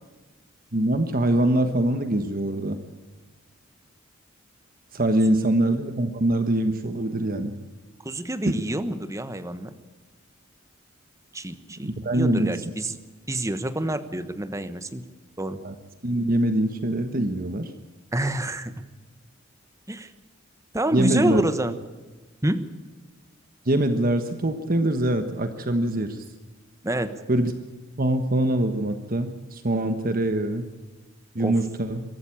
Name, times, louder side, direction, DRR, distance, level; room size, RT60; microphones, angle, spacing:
voice 1, 0.7-2.8 4.9-7.5 8.4-8.6 11.8-12.5 15.6-15.7 16.0-17.7 20.9-21.4 23.6-26.2 27.3-27.5 28.0-30.7 31.3-32.0, right 1 dB, 45° right, 8 dB, 1.3 m, -23 dB
voice 2, 8.0-9.7 11.3-13.0 13.3-15.0 15.4-15.6 18.1-18.7 19.9-20.1 20.7-21.8 22.4-22.7 26.8-27.1 31.4-31.6, right 1 dB, 15° right, 11 dB, 1.2 m, -27 dB
23.5 x 13.5 x 8.6 m, 1.2 s
head